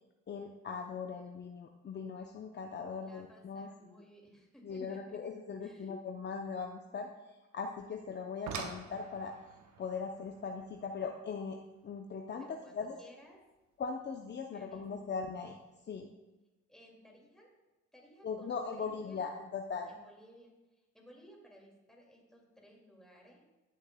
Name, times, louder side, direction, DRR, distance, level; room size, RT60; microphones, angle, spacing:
voice 1, 0.3-3.9 4.6-9.3 9.8-11.6 11.8-13.0 13.8-15.6 15.8-16.1 18.2-19.9, left 5 dB, 35° left, 3 dB, 0.6 m, -40 dB
voice 2, 3.0-5.2 5.6-6.0 12.4-13.5 14.5-15.0 16.7-17.5 17.9-19.3 19.9-23.5, equal, ahead, -2 dB, 2.2 m, -58 dB
sound 1, 8.1-13.2 14.6-14.7 15.3-15.5 15.8-15.9, right 6 dB, 70° right, 0.9 m, -47 dB
11.5 x 6.7 x 2.2 m, 1.1 s
cardioid pair, 90°, 30 cm